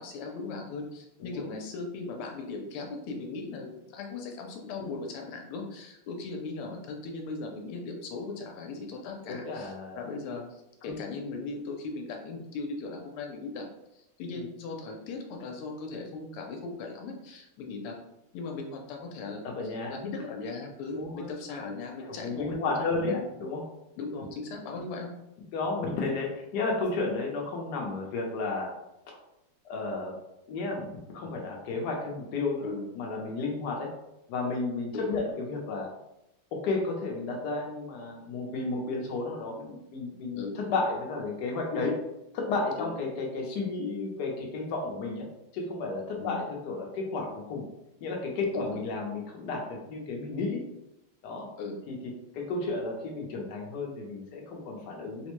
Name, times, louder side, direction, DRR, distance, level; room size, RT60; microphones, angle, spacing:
voice 1, 0.0-13.7 13.9-17.9 18.3-23.3 24.0-25.1 32.6-32.8 34.9-35.1 40.4-40.5 42.8-42.9 46.2-46.4 48.5-48.8 51.6-51.8, left 3 dB, 85° left, 2 dB, 1.5 m, -38 dB
voice 2, 9.3-10.0 10.8-10.9 14.3-14.4 19.4-20.0 20.9-21.3 22.0-23.1 23.4-23.6 24.7-24.8 25.5-28.7 29.1-29.2 29.6-30.1 30.5-33.9 34.3-35.9 36.5-42.0 42.3-45.3 45.5-47.7 48.0-50.6 51.2-51.5 51.9-52.0 52.3-55.3, left 3 dB, 65° left, 0 dB, 1.1 m, -32 dB
4.1 x 2.1 x 3.0 m, 0.88 s
omnidirectional pair, 2.4 m